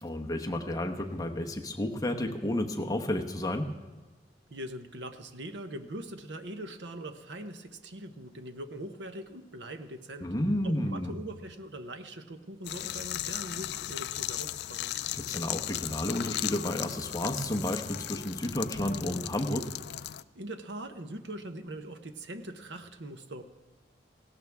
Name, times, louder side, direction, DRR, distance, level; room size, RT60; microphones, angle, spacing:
voice 1, 0.0-3.7 10.2-11.1 15.1-19.7, left 1 dB, 20° left, 4 dB, 1.0 m, -31 dB
voice 2, 4.5-10.3 10.6-14.9 20.3-23.4, right 1 dB, 70° right, 8 dB, 1.0 m, -42 dB
sound 1, 12.6-20.2, left 12 dB, 60° left, 0.4 m, -36 dB
18.5 x 17.0 x 3.6 m, 1.2 s
head